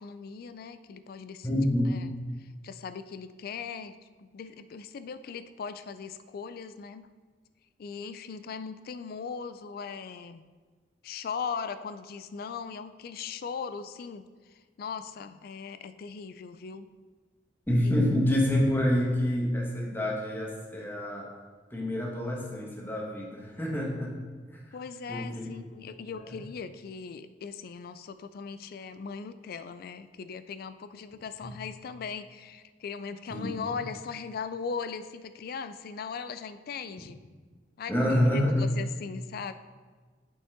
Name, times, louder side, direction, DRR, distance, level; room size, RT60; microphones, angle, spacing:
voice 1, 0.0-1.5 1.9-7.1 7.8-10.4 11.0-16.9 17.8-18.2 24.7-37.2 37.8-39.5, left 6 dB, 55° left, 12 dB, 0.3 m, -39 dB
voice 2, 1.4-2.0 17.7-21.3 21.7-24.2 25.1-25.5 31.4-31.5 33.3-33.5 37.9-38.6, left 1 dB, 10° left, -2 dB, 1.2 m, -27 dB
8.4 x 5.4 x 3.6 m, 1.4 s
head